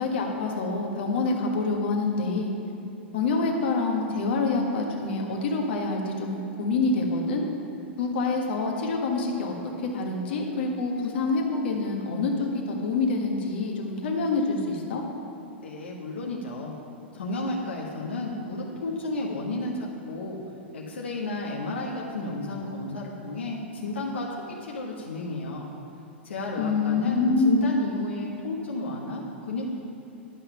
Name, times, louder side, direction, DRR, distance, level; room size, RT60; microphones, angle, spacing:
voice 1, 0.0-2.5 3.1-7.5 8.0-15.0 26.6-27.6, left 3 dB, 60° left, 1 dB, 1.4 m, -26 dB
voice 2, 15.6-16.7 17.1-20.4 20.7-25.7 26.2-29.7, left 2 dB, 80° left, -3 dB, 1.3 m, -32 dB
11.0 x 5.8 x 5.7 m, 2.9 s
hypercardioid pair, 100°, 6 cm